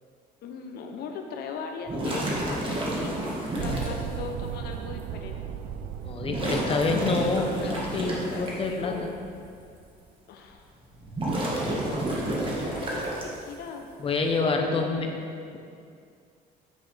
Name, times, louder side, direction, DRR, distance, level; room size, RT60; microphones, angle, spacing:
voice 1, 0.4-3.2 3.6-5.4 6.6-7.2 7.6-7.7 8.3-9.1 10.3-10.7 11.6-13.9 14.2-15.1, left 5 dB, 70° left, 4 dB, 0.7 m, -39 dB
sound 1, 1.9-4.0 5.0-5.1 6.2-8.5 10.9-13.5, right 1 dB, 30° right, 1.6 m, -30 dB
sound 2, 3.6-9.9, right 9 dB, 85° right, 0.4 m, -38 dB
voice 2, 6.0-9.1 14.0-15.1, left 3 dB, 35° left, 2 dB, 0.9 m, -27 dB
8.3 x 6.1 x 3.4 m, 2.3 s
cardioid pair, 110°, 17 cm